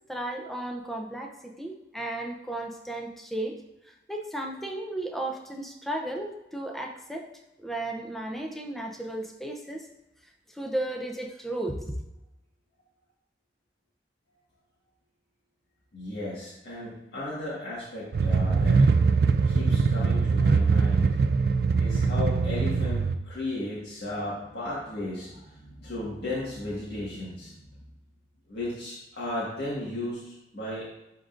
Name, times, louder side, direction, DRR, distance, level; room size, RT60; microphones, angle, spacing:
voice 1, 0.1-3.6 3.8-7.3 7.6-9.9 10.5-11.9, right 1 dB, ahead, 1 dB, 0.6 m, -34 dB
voice 2, 15.9-18.8 19.4-21.2 21.7-27.7 28.5-30.9, left 1 dB, 70° left, -8 dB, 1.7 m, -35 dB
sound 1, 18.1-23.2, right 4 dB, 55° right, 0.3 m, -22 dB
11.0 x 3.8 x 2.5 m, 0.95 s
head